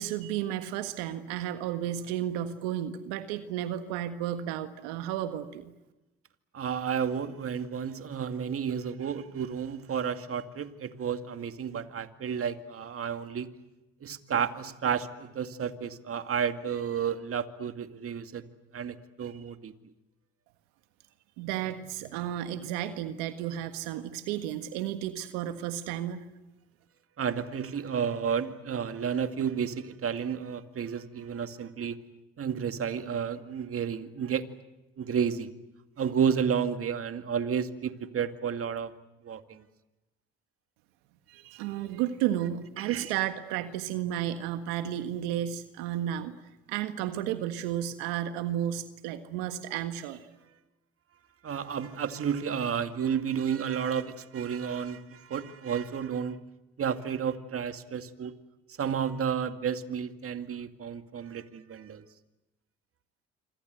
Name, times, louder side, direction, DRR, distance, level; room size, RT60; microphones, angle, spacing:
voice 1, 0.0-5.7 21.4-26.2 41.3-46.3 46.7-50.3, right 11 dB, 85° right, 1.7 m, -33 dB
voice 2, 6.5-13.5 14.0-18.5 18.7-19.7 27.2-32.0 32.4-34.6 35.0-35.5 36.0-38.9 39.2-39.6 42.8-43.1 51.4-56.4 56.8-58.3 58.8-62.0, right 7 dB, 50° right, 2.3 m, -31 dB
26.5 x 26.0 x 8.0 m
supercardioid pair, 65°, 30 cm